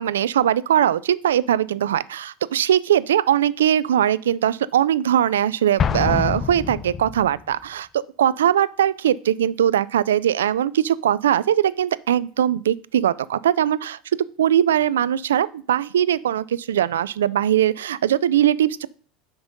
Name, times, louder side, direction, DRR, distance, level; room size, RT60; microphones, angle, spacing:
voice 1, 0.0-14.0 14.4-18.9, right 10 dB, 85° right, 0.3 m, -20 dB
Explosion, 5.8-7.4, left 7 dB, 35° left, 0.6 m, -25 dB
5.9 x 5.2 x 5.2 m
hypercardioid pair, 90°, 0 cm